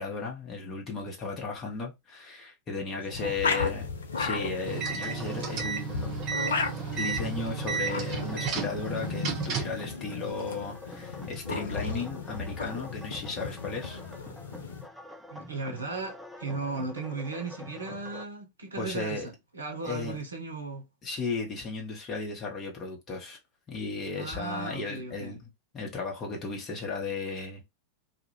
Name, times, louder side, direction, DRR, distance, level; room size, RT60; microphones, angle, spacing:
voice 1, 0.0-3.9 4.2-6.2 6.9-14.0 18.8-19.3 19.8-20.2 21.0-23.4 23.7-25.4 25.7-27.7, left 4 dB, 25° left, 0.8 m, -35 dB
voice 2, 3.0-3.4 15.3-20.9 24.2-25.4, right 3 dB, 75° right, 0.6 m, -36 dB
sound 1, 3.1-14.8, left 4 dB, 70° left, 0.4 m, -35 dB
sound 2, 4.5-18.2, left 1 dB, ahead, 0.4 m, -46 dB
sound 3, 4.7-9.8, right 6 dB, 35° right, 0.7 m, -33 dB
2.3 x 2.1 x 3.0 m
figure-of-eight pair, 90°, 0 cm